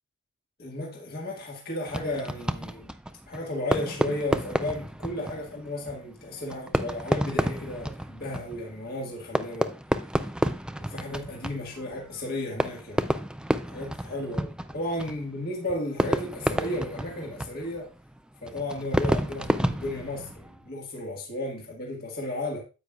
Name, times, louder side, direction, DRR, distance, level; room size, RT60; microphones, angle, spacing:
voice 1, 0.6-2.9 3.3-9.7 10.8-13.2 13.6-17.9 18.4-22.6, left 1 dB, 45° left, 1.6 m, -34 dB
Fireworks, 1.9-20.7, right 1 dB, 5° right, 0.3 m, -31 dB
9.5 x 8.0 x 2.4 m
head